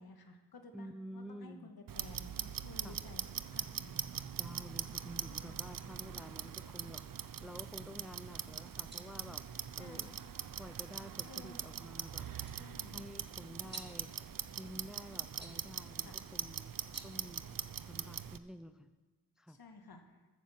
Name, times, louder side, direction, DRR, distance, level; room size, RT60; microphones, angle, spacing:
voice 1, 0.0-3.2 3.5-4.0 5.3-5.6 9.8-10.2 11.3-11.6 12.6-13.1 16.0-16.2 19.5-20.2, left 3 dB, 65° left, 5 dB, 1.8 m, -54 dB
voice 2, 0.7-1.7 2.8-3.1 3.7-3.9 4.3-9.4 9.8-10.2 10.6-12.3 12.9-16.7 17.0-17.4 17.9-18.9 19.4-19.6, equal, ahead, 10 dB, 0.7 m, -50 dB
Clock, 1.9-18.4, right 8 dB, 55° right, 0.7 m, -42 dB
sound 1, 8.6-18.0, right 1 dB, 25° right, 2.3 m, -59 dB
14.0 x 8.8 x 7.3 m, 1.2 s
cardioid pair, 60°, 40 cm